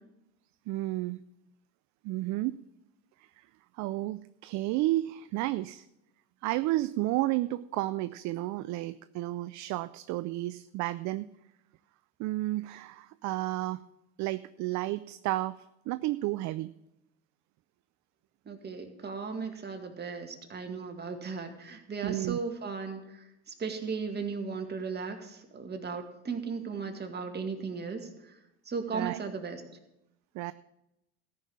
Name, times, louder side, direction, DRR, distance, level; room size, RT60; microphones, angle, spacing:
voice 1, 0.7-1.2 2.0-2.6 3.2-3.5 3.7-5.8 6.4-11.3 12.2-13.8 14.2-15.6 15.9-16.7 22.0-22.4 28.9-29.2 30.3-30.5, right 17 dB, 55° right, 15 dB, 0.4 m, -32 dB
voice 2, 18.5-23.2 23.6-28.4 28.7-29.6, right 5 dB, 30° right, 5 dB, 2.0 m, -36 dB
14.0 x 5.4 x 8.6 m, 0.88 s
hypercardioid pair, 85°, 35 cm